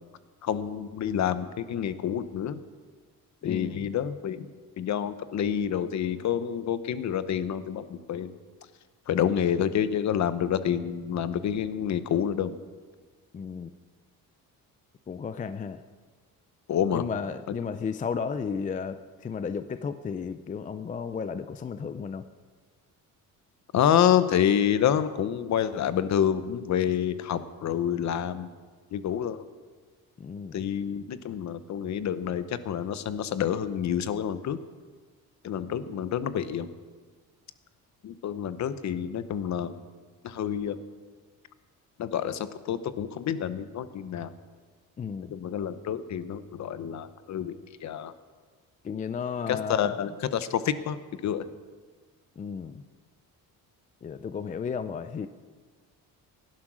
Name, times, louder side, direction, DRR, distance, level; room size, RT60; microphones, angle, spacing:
voice 1, 0.4-2.6 3.4-4.5 4.8-8.3 9.1-12.6 16.7-17.0 23.7-28.5 28.9-29.4 30.5-34.6 35.4-36.7 38.0-39.7 40.2-40.8 42.0-44.3 45.3-47.6 47.8-48.1 49.5-51.0 51.2-51.4, left 9 dB, 50° left, 13 dB, 0.9 m, -28 dB
voice 2, 3.4-3.9 13.3-13.7 15.1-15.8 16.9-22.2 30.2-30.6 45.0-45.3 48.8-49.9 52.4-52.8 54.0-55.3, left 6 dB, 20° left, 11 dB, 0.4 m, -33 dB
17.5 x 12.0 x 6.2 m, 1.5 s
cardioid pair, 155°, 35 cm